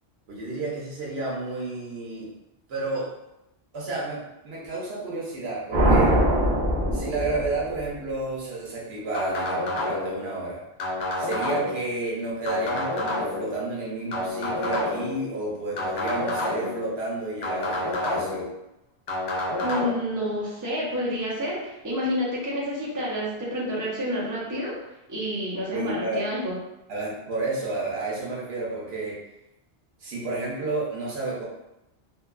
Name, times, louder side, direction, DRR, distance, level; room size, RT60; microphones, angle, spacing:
voice 1, 0.3-2.3 2.7-3.1 3.7-6.2 6.9-10.6 11.2-18.5 25.7-26.2 26.9-29.2 30.0-31.4, right 2 dB, 80° right, -5 dB, 1.0 m, -31 dB
sound 1, 5.7-8.0, right 1 dB, 55° right, 0.9 m, -22 dB
sound 2, 9.1-10.2 10.8-11.8 12.5-13.5 14.1-15.2 15.8-16.8 17.4-18.5 19.1-19.9, left 2 dB, 75° left, 0.8 m, -28 dB
voice 2, 19.6-24.8 25.1-26.6, equal, 20° right, -7 dB, 0.6 m, -29 dB
2.8 x 2.3 x 2.2 m, 0.89 s
omnidirectional pair, 1.1 m